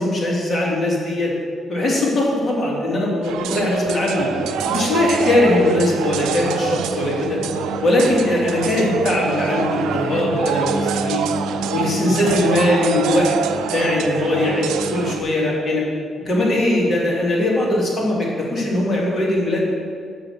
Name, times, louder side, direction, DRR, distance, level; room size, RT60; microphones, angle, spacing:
voice 1, 0.0-1.3 1.7-4.3 4.7-7.4 7.8-11.2 11.7-13.3 13.7-15.8 16.3-19.6, left 1 dB, 35° left, -4 dB, 2.2 m, -20 dB
sound 1, 3.2-15.2, right 8 dB, 90° right, 0.4 m, -26 dB
Singing, 4.2-15.3, right 2 dB, 55° right, 0.9 m, -33 dB
6.8 x 5.0 x 6.2 m, 2.2 s
cardioid pair, 90°, 0 cm